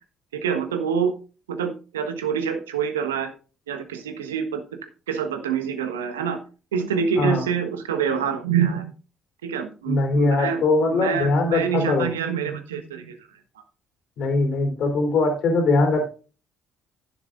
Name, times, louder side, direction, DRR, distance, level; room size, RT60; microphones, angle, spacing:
voice 1, 0.3-1.1 1.5-3.3 3.7-4.6 5.1-6.4 6.7-8.9 9.4-13.2, right 7 dB, 85° right, 8 dB, 1.3 m, -26 dB
voice 2, 9.9-12.1 14.2-16.1, left 3 dB, 60° left, 3 dB, 3.4 m, -21 dB
11.0 x 11.0 x 2.5 m, 0.34 s
figure-of-eight pair, 50°, 0 cm